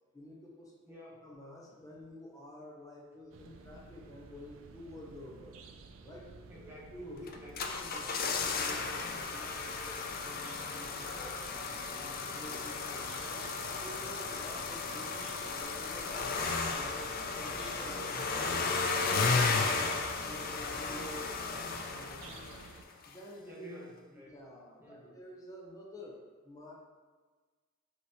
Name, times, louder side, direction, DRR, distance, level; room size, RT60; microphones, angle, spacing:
voice 1, 0.1-1.0 1.2-5.6 6.0-6.3 6.9-7.3 7.8-13.4 13.7-17.1 17.4-18.8 19.1-20.0 20.3-22.3 23.0-23.7 24.1-26.7, equal, 15° left, -2 dB, 0.7 m, -50 dB
voice 2, 0.9-1.2 6.5-6.9 7.2-7.7 22.2-22.6 23.4-24.3 24.8-25.2, left 1 dB, 10° right, -6 dB, 0.9 m, -51 dB
sound 1, 3.3-22.8, right 4 dB, 85° right, 0.4 m, -53 dB
sound 2, 7.3-22.8 23.0-23.1, left 4 dB, 45° left, 0.4 m, -34 dB
5.4 x 3.0 x 2.9 m, 1.4 s
head